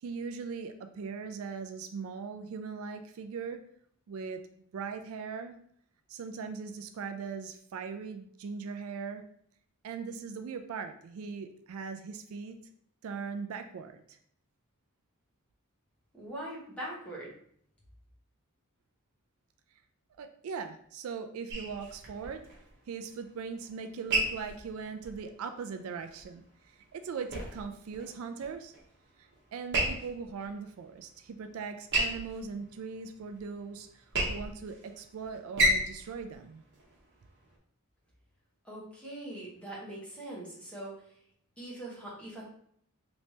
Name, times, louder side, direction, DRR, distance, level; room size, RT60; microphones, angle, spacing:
voice 1, 0.0-3.6 4.1-4.4 4.7-5.6 6.1-9.2 9.8-12.6 13.0-14.2 20.2-22.5 22.9-28.7 29.5-36.6, right 5 dB, 70° right, 8 dB, 0.3 m, -40 dB
voice 2, 16.1-17.3 38.6-40.9 41.6-42.4, right 1 dB, 5° left, -5 dB, 1.1 m, -42 dB
sound 1, 21.5-37.6, right 1 dB, 55° right, 0.9 m, -35 dB
3.2 x 3.1 x 2.7 m, 0.65 s
head